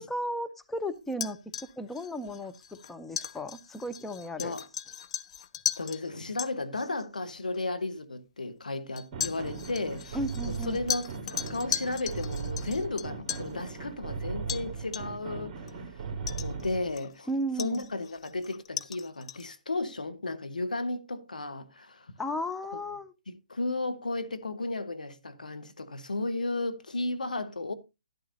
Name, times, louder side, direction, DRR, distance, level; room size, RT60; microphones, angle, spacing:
voice 1, 0.0-1.4 1.8-4.5 10.1-10.8 17.3-17.9 22.2-23.1, equal, 5° left, 0.6 m, -34 dB
Stirring Cup, 1.1-6.0 6.4-6.5 7.5-7.6 9.0-13.5 14.5-14.7 14.9-15.3 15.7-15.8 16.3-17.2 17.6-19.5, left 9 dB, 45° left, 0.7 m, -37 dB
voice 2, 5.8-10.2 10.5-16.0 16.4-17.3 17.6-22.1 22.7-22.8 23.3-27.7, left 2 dB, 85° left, 1.6 m, -34 dB
sound 1, 9.1-16.9, right 4 dB, 30° right, 2.1 m, -38 dB
12.0 x 11.0 x 2.7 m
hypercardioid pair, 140°, 4 cm